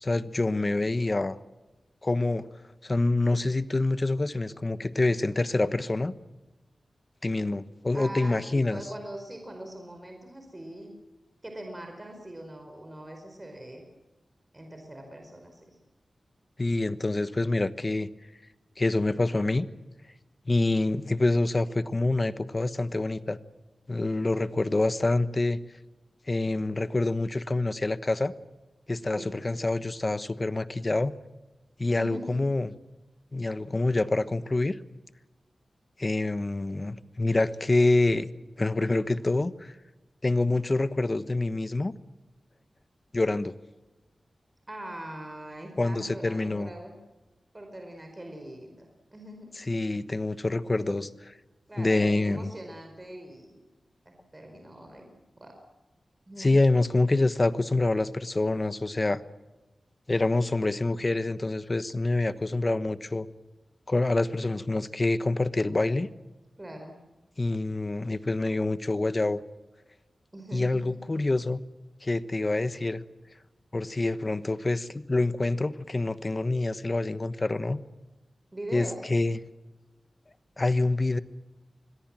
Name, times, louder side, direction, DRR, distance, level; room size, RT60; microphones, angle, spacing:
voice 1, 0.0-1.4 2.0-2.4 2.8-6.2 7.2-8.8 16.6-18.1 18.8-19.7 20.5-23.4 23.9-25.6 26.3-28.3 28.9-31.1 31.8-32.7 33.3-34.8 36.0-38.3 38.6-39.7 40.2-41.9 43.1-43.5 45.8-46.7 49.6-51.3 51.8-52.5 56.4-59.2 60.1-63.3 63.9-66.1 67.4-69.4 70.5-71.6 72.0-73.0 73.7-77.8 78.7-79.4 80.6-81.2, left 2 dB, 35° left, 14 dB, 1.1 m, -26 dB
voice 2, 7.9-10.9 11.4-13.8 14.5-15.7 29.1-29.3 31.9-32.4 44.7-46.9 47.5-49.5 51.7-53.6 54.0-55.0 55.4-55.6 56.3-56.5 66.6-66.9 70.3-71.0 78.5-79.1, right 1 dB, 25° right, 3 dB, 4.8 m, -42 dB
26.5 x 21.5 x 7.6 m, 1.1 s
cardioid pair, 60°, 0 cm